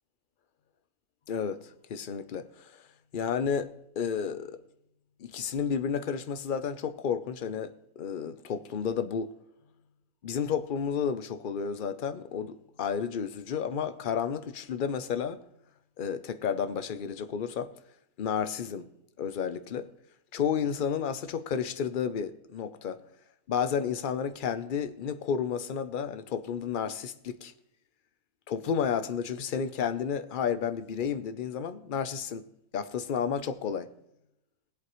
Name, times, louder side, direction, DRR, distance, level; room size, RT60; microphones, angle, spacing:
voice 1, 1.3-2.8 3.1-4.6 5.2-9.3 10.2-15.4 16.0-17.7 18.2-18.9 19.2-19.9 20.3-23.0 23.5-27.5 28.5-32.5 32.7-33.9, left 7 dB, 50° left, 0.7 m, -31 dB
20.5 x 8.0 x 3.0 m
omnidirectional pair, 1.5 m